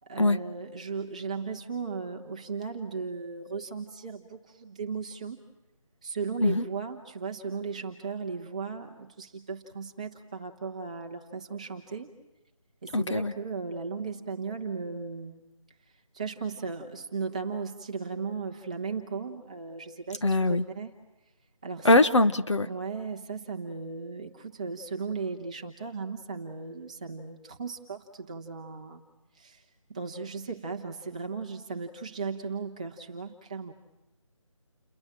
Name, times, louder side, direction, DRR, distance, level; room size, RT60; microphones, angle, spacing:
voice 1, 0.0-5.4 6.0-12.1 12.8-15.4 16.1-20.9 21.6-22.2 22.6-29.0 29.3-33.7, right 5 dB, 15° right, 1 dB, 1.1 m, -36 dB
voice 2, 12.9-13.3 20.2-20.6 21.8-22.7, left 2 dB, 60° left, 10 dB, 1.2 m, -22 dB
29.0 x 22.0 x 7.6 m, 0.94 s
figure-of-eight pair, 175°, 17 cm